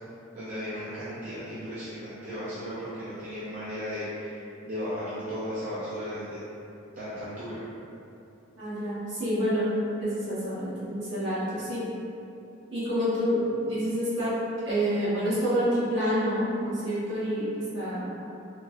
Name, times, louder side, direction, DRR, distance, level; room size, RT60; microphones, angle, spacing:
voice 1, 0.3-6.4 6.9-7.6, equal, 40° right, -12 dB, 0.5 m, -35 dB
voice 2, 8.6-9.7 10.0-11.8 12.7-14.4 14.6-18.1, equal, 60° right, -12 dB, 1.2 m, -28 dB
3.4 x 2.2 x 2.6 m, 2.8 s
head